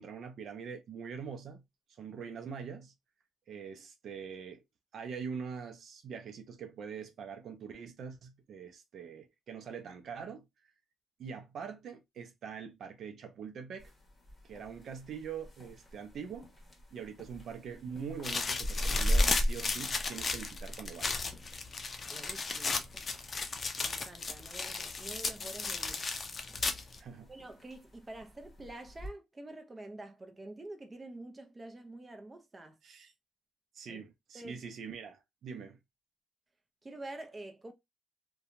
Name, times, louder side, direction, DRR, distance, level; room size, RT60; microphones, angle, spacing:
voice 1, 0.0-1.6 2.0-2.9 3.5-4.6 4.9-10.4 11.2-13.9 14.4-16.5 16.9-21.3 27.0-27.3 32.8-33.1 33.7-35.8, right 6 dB, 65° right, 0.6 m, -43 dB
Footsteps fast then slow, 13.8-29.1, equal, 20° left, 1.2 m, -39 dB
sound 1, 18.2-27.0, left 4 dB, 35° left, 0.5 m, -35 dB
voice 2, 22.1-22.9 23.8-26.8 27.3-32.8 33.9-34.0 34.3-34.6 36.8-37.7, right 2 dB, 25° right, 0.7 m, -47 dB
2.8 x 2.3 x 2.5 m
cardioid pair, 90°, 0 cm